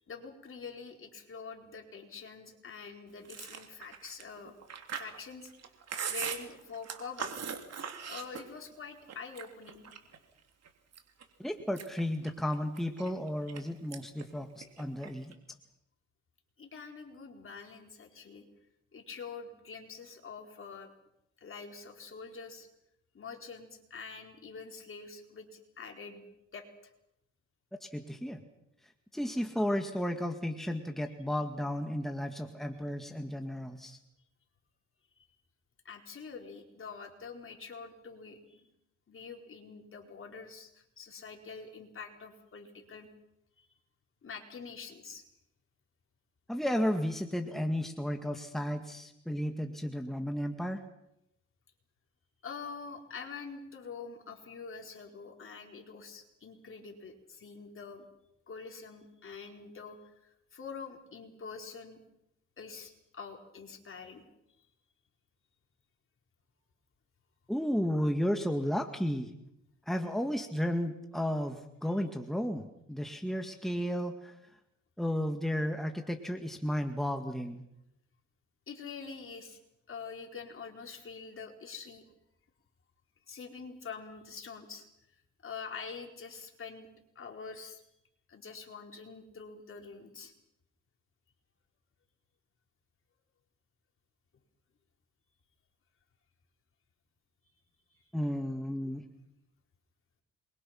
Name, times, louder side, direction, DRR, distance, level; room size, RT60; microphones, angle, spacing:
voice 1, 0.1-4.5 5.0-5.5 6.1-7.4 8.0-9.9 16.6-18.4 18.9-20.9 21.4-22.7 23.1-26.3 26.5-26.7 35.8-38.7 39.1-43.1 43.6-43.7 44.2-45.2 52.4-58.0 58.5-62.0 62.6-64.2 78.7-79.6 79.9-82.0 83.3-84.9 85.4-86.9 87.1-87.8 88.3-90.3 97.9-98.0, left 5 dB, 45° left, 2 dB, 4.5 m, -45 dB
Chewing mastication, 3.2-8.7 9.1-10.2 10.6-11.2 11.6-13.6 13.9-14.2 14.5-15.3, right 7 dB, 60° right, 3.3 m, -40 dB
voice 2, 11.4-15.3 27.8-28.4 29.1-34.0 46.5-50.8 67.5-69.3 69.9-74.4 75.0-77.6 98.1-99.0, equal, ahead, 5 dB, 2.0 m, -33 dB
27.5 x 23.0 x 6.0 m, 0.80 s
cardioid pair, 90°, 30 cm